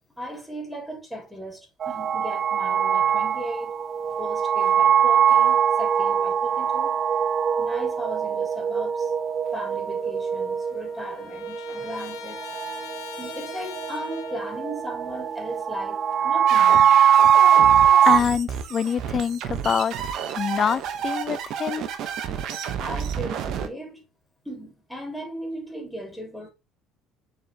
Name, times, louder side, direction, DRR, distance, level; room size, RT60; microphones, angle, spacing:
voice 1, 0.2-3.8 4.2-7.0 7.6-9.1 9.5-12.5 13.2-17.0 22.8-24.0 24.4-26.5, equal, ahead, 3.5 m, -37 dB
sound 1, 1.8-18.2, right 8 dB, 40° right, 0.6 m, -21 dB
Trumpet, 9.9-10.0 10.2-14.6, left 9 dB, 85° left, 2.2 m, -42 dB
sound 2, 16.5-23.7, right 8 dB, 60° right, 1.1 m, -31 dB
voice 2, 18.0-21.8, left 7 dB, 40° left, 0.4 m, -26 dB
6.6 x 4.5 x 3.6 m
supercardioid pair, 95°, 0 cm